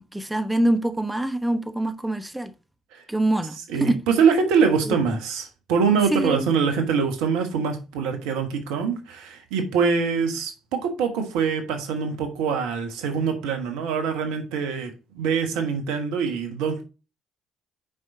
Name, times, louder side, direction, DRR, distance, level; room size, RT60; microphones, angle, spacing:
voice 1, 0.0-2.5 3.1-4.0 4.9-5.0 6.1-6.5, right 1 dB, 10° right, 1.0 m, -25 dB
voice 2, 3.7-16.8, right 6 dB, 75° right, 1.3 m, -24 dB
6.3 x 5.5 x 3.8 m
hypercardioid pair, 50°, 0 cm